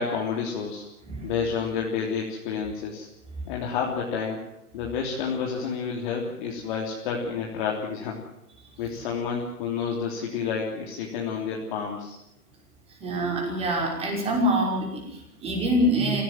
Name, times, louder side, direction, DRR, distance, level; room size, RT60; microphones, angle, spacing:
voice 1, 0.0-0.8 1.2-3.1 3.5-4.4 4.7-8.2 8.8-12.2, left 6 dB, 30° left, -1 dB, 3.4 m, -29 dB
voice 2, 12.9-16.2, equal, 15° right, 1 dB, 5.8 m, -25 dB
26.5 x 17.0 x 7.5 m, 0.83 s
figure-of-eight pair, 140°, 47 cm